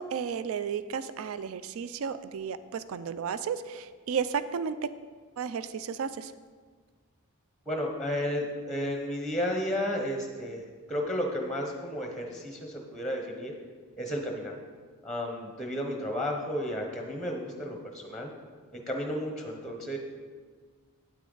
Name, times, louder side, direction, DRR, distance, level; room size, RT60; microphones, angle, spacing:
voice 1, 0.0-4.9 5.4-6.3, right 6 dB, 65° right, 13 dB, 0.4 m, -33 dB
voice 2, 7.7-13.5 14.0-14.5 15.0-18.3 18.7-20.0, equal, ahead, 2 dB, 0.8 m, -33 dB
9.0 x 8.4 x 3.9 m, 1.5 s
head